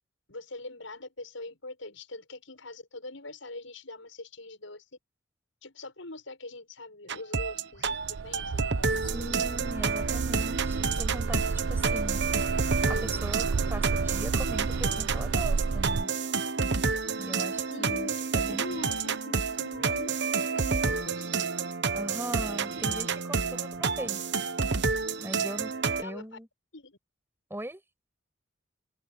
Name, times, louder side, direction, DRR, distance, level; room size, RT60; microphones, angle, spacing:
voice 1, 0.3-4.8 5.6-9.4 17.5-18.2 18.5-20.1 20.5-21.5 26.0-26.4 26.7-27.0, left 2 dB, 85° left, 7.1 m, -43 dB
sound 1, 7.1-26.0, right 5 dB, 65° right, 1.2 m, -29 dB
sound 2, 7.8-16.0, right 4 dB, 90° right, 0.6 m, -32 dB
voice 2, 9.1-12.5 12.9-16.1 17.1-18.1 18.3-18.7 21.9-24.2 25.2-25.7 26.0-26.5 27.5-27.8, right 1 dB, 10° right, 7.0 m, -39 dB
head